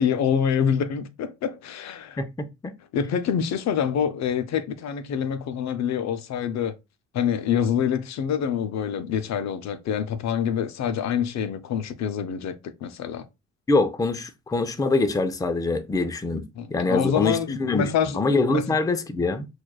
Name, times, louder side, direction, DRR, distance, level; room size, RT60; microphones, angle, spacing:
voice 1, 0.0-2.2 2.9-6.7 7.1-13.3 16.5-18.2 18.5-18.8, left 8 dB, 65° left, 0.5 m, -26 dB
voice 2, 13.7-16.4 16.7-19.5, left 3 dB, 10° left, 0.5 m, -24 dB
6.0 x 2.3 x 2.3 m
cardioid pair, 90°, 30 cm